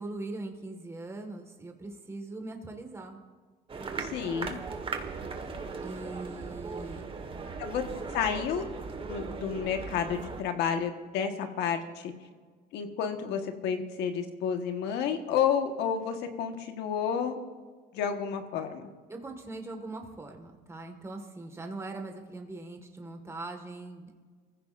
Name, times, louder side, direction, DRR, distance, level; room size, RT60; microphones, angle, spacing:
voice 1, 0.0-3.2 5.8-7.1 7.4-7.5 19.1-24.1, right 2 dB, 15° right, 3 dB, 1.8 m, -41 dB
sound 1, 3.7-10.4, right 4 dB, 35° right, 1.6 m, -38 dB
voice 2, 4.0-4.6 7.6-7.8 8.1-8.6 9.1-12.1 12.7-17.4 17.9-18.8, left 7 dB, 85° left, 6 dB, 1.5 m, -30 dB
26.0 x 15.5 x 2.6 m, 1.5 s
cardioid pair, 110°, 17 cm